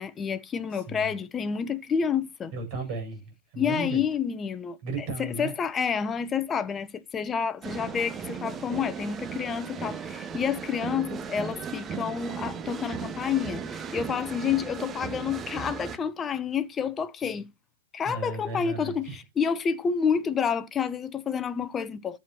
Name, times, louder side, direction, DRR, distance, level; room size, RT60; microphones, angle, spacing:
voice 1, 0.0-2.5 3.6-4.8 5.2-17.5 17.9-22.2, left 7 dB, 15° left, 0.9 m, -29 dB
voice 2, 0.7-1.1 2.5-4.0 4.8-5.5 18.0-19.2, right 3 dB, 40° right, 7.9 m, -35 dB
sound 1, 7.6-16.0, right 6 dB, 20° right, 1.0 m, -36 dB
14.0 x 7.9 x 3.0 m
figure-of-eight pair, 115°, 0 cm